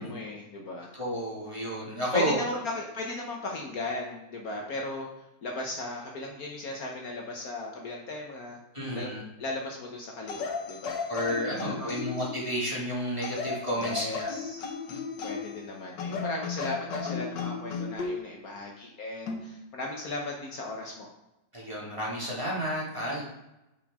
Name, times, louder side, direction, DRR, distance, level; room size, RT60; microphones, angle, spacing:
voice 1, 0.0-0.9 2.1-8.6 8.9-9.1 9.4-11.0 11.3-12.0 13.8-14.6 15.2-21.1, left 2 dB, 60° left, 0 dB, 1.4 m, -36 dB
voice 2, 0.9-2.4 8.7-9.2 11.1-14.3 14.9-15.0 21.5-23.2, equal, 15° right, -6 dB, 2.2 m, -31 dB
sound 1, 10.3-12.5 13.2-15.6 16.0-18.2 19.3-19.5, left 5 dB, 80° left, 1.7 m, -35 dB
9.8 x 5.4 x 3.6 m, 0.95 s
omnidirectional pair, 1.9 m